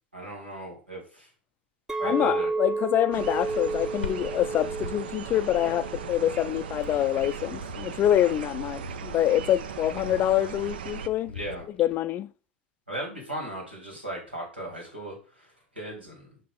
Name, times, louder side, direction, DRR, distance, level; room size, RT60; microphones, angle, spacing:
voice 1, 0.1-1.3 2.0-2.5 8.2-8.3 11.3-11.6 12.9-16.4, right 1 dB, 90° right, 2.5 m, -37 dB
Chink clink, 1.9-6.2 6.6-7.0, right 3 dB, 10° right, 0.6 m, -32 dB
voice 2, 2.0-11.3 11.8-12.3, left 12 dB, 35° left, 0.3 m, -26 dB
sound 1, 3.1-11.1, right 7 dB, 70° right, 0.5 m, -38 dB
Glass, 4.0-12.0, left 6 dB, 80° left, 0.7 m, -44 dB
5.7 x 4.7 x 3.6 m
figure-of-eight pair, 80°, 6 cm